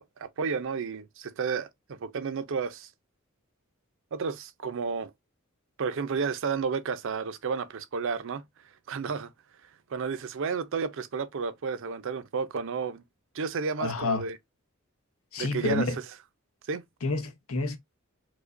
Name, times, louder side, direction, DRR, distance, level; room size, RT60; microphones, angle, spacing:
voice 1, 0.0-2.9 4.1-5.1 5.8-8.4 8.9-9.3 9.9-13.0 13.3-14.4 15.4-15.9 16.7-16.8, right 5 dB, 60° right, 0.5 m, -32 dB
voice 2, 13.8-14.3 15.3-16.0 17.0-17.8, left 3 dB, 80° left, 0.8 m, -29 dB
4.8 x 2.2 x 2.5 m
head